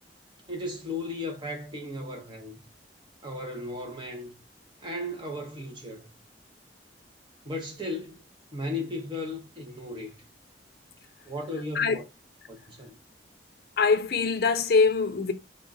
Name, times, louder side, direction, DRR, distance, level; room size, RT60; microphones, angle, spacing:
voice 1, 0.5-2.6 3.2-4.4 4.8-6.1 7.4-8.2 8.5-10.3 11.2-12.0 12.5-13.0, left 2 dB, 25° right, 0.8 m, -35 dB
voice 2, 13.8-15.3, left 4 dB, 60° left, 0.5 m, -23 dB
3.6 x 2.4 x 3.9 m
head